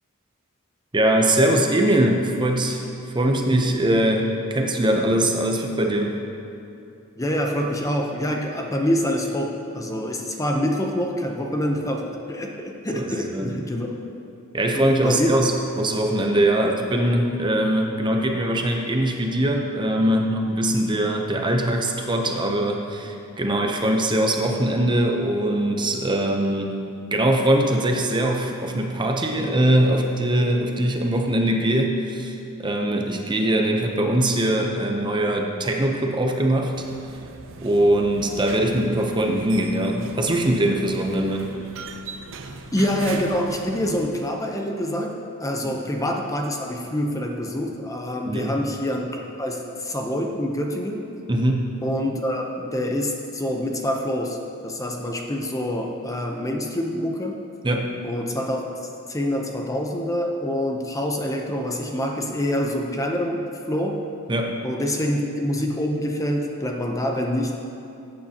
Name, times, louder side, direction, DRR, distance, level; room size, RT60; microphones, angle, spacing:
voice 1, 0.9-2.8 3.1-6.2 12.9-13.5 14.5-26.8 27.1-36.7 37.6-41.5 45.6-45.7 48.3-48.5 51.3-51.7 57.6-57.9 64.3-64.5, right 1 dB, 20° right, 2 dB, 0.7 m, -22 dB
voice 2, 7.2-13.9 14.7-15.3 42.7-45.1 45.4-49.1 49.4-51.0 51.8-54.4 54.6-57.4 58.0-58.6 59.1-63.4 63.7-64.0 64.6-67.6, equal, 15° left, 1 dB, 0.7 m, -26 dB
sound 1, 36.7-44.1, right 3 dB, 65° right, 0.6 m, -39 dB
15.0 x 8.5 x 2.9 m, 2.7 s
head